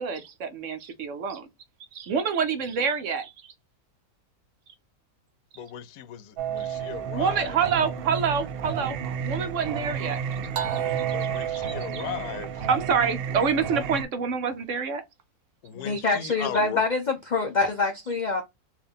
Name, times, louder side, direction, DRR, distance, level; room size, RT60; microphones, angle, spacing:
voice 1, 0.0-1.5 1.9-3.3 7.1-9.0 9.2-10.2 10.6-10.9 11.2-12.1 12.7-15.0 16.2-16.3, right 6 dB, 65° right, 0.8 m, -27 dB
voice 2, 5.6-7.5 11.1-12.5 15.6-16.8, left 9 dB, 85° left, 1.1 m, -37 dB
Singing, 6.4-14.0, right 8 dB, 90° right, 0.5 m, -31 dB
voice 3, 15.7-18.4, left 3 dB, 65° left, 0.4 m, -25 dB
3.6 x 2.6 x 3.4 m
omnidirectional pair, 1.6 m